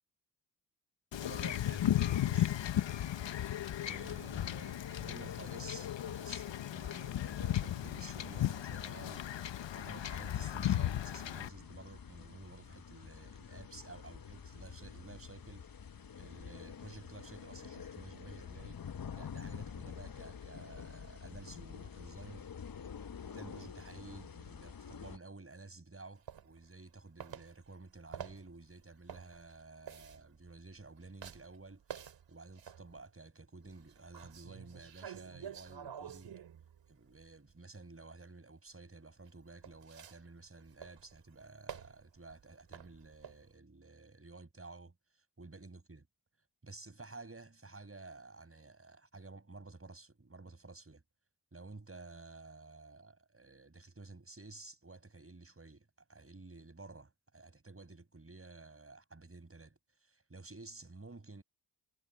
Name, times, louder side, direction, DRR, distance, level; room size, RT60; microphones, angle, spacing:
Wind / Ocean / Boat Water vehicle, 1.1-11.5, left 12 dB, 85° left, 1.2 m, -35 dB
voice 1, 1.2-2.6 3.8-9.3 9.7-15.7 16.2-18.8 19.1-22.5 23.3-36.4 36.9-46.1 46.6-51.0 51.5-61.4, right 3 dB, 30° right, 6.8 m, -52 dB
sound 1, 6.9-25.2, left 7 dB, 50° left, 1.3 m, -48 dB
sound 2, 26.3-26.9 27.2-33.1 33.6-37.5 39.3-43.5, right 8 dB, 80° right, 3.0 m, -50 dB
cardioid pair, 50°, 43 cm